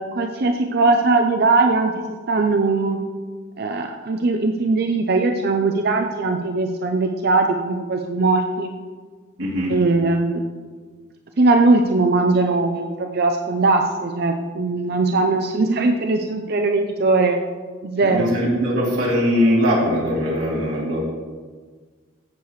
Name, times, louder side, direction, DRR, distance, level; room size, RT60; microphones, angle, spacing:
voice 1, 0.0-3.0 3.6-8.7 9.7-10.4 11.4-17.4 17.8-18.3, right 3 dB, 50° right, 4 dB, 0.5 m, -20 dB
voice 2, 9.4-9.7 18.0-21.0, equal, 75° right, -7 dB, 2.9 m, -21 dB
15.0 x 6.7 x 3.1 m, 1.5 s
head